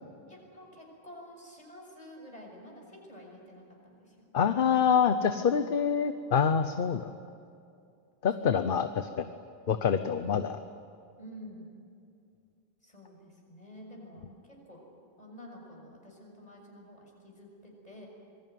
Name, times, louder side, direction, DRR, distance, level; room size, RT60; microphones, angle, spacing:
voice 1, 0.3-4.3 5.2-5.5 8.4-8.6 11.2-11.7 12.8-14.9 15.2-18.1, equal, 40° left, 0 dB, 6.5 m, -49 dB
voice 2, 4.3-7.1 8.2-9.3 9.7-10.6, left 7 dB, 60° left, 10 dB, 1.0 m, -26 dB
26.0 x 21.5 x 9.4 m, 2.4 s
omnidirectional pair, 1.0 m